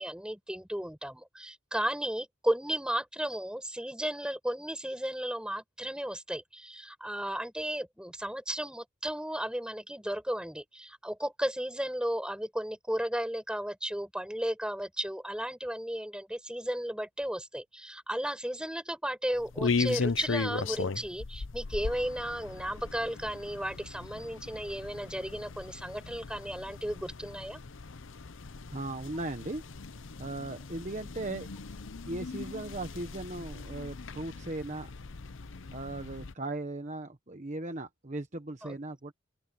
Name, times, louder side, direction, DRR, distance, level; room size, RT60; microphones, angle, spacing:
voice 1, 0.0-27.6 38.6-38.8, equal, 5° right, 5.1 m, -34 dB
sound 1, 19.3-36.3, left 4 dB, 70° left, 0.8 m, -37 dB
voice 2, 28.7-29.6 30.2-31.5 32.1-34.9 35.7-39.1, right 2 dB, 35° right, 1.2 m, -38 dB
open air
head